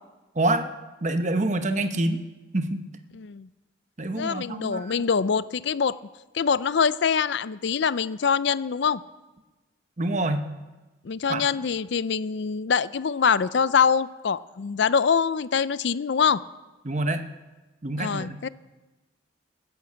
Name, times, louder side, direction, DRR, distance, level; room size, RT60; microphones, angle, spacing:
voice 1, 0.3-0.7 1.0-2.2 2.5-2.8 4.0-5.1 10.0-10.5 11.3-11.4 16.8-17.3 17.8-18.4, right 2 dB, 35° right, 8 dB, 0.9 m, -26 dB
voice 2, 3.1-3.5 4.1-6.0 6.3-9.0 11.0-16.4 18.0-18.5, left 6 dB, 65° left, 17 dB, 0.4 m, -24 dB
13.0 x 11.0 x 8.5 m, 1.2 s
head